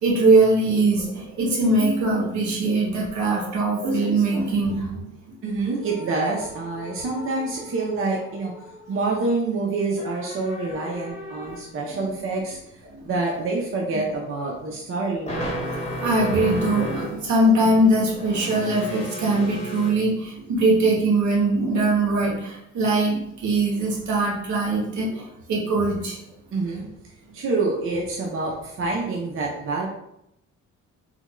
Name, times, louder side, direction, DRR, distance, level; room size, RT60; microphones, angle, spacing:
voice 1, 0.0-5.1 11.3-11.4 11.9-12.1 12.9-13.1 16.0-26.2, right 2 dB, 70° right, -2 dB, 1.1 m, -21 dB
sound 1, 1.0-1.5 1.9-2.0 3.1-4.0 5.8-8.9 10.0-11.8 15.3-17.2 17.5-19.9, equal, 20° left, 1.2 m, -35 dB
voice 2, 5.4-8.5 8.9-12.6 13.0-15.3 26.5-26.9 27.3-29.9, right 3 dB, 45° right, -2 dB, 0.6 m, -26 dB
3.5 x 2.2 x 3.0 m, 0.81 s
cardioid pair, 90°, 30 cm